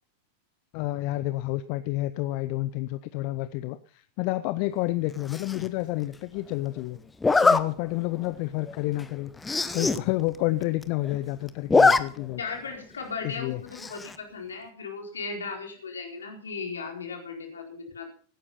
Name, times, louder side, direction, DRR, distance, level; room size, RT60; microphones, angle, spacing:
voice 1, 0.7-7.0 7.4-9.3 9.7-12.4 13.2-13.6, left 18 dB, 45° left, 14 dB, 0.6 m, -29 dB
Zipper (clothing), 5.3-5.7 7.2-7.6 8.2-8.3 8.7-8.8 9.0-9.1 9.4-10.0 10.3-10.4 10.6-11.2 11.5-12.0 12.3-12.4 13.8-14.1, left 4 dB, 10° left, 0.9 m, -22 dB
voice 2, 12.4-18.1, left 4 dB, 70° left, 2 dB, 4.3 m, -37 dB
17.0 x 10.0 x 5.7 m, 0.43 s
figure-of-eight pair, 90°, 0 cm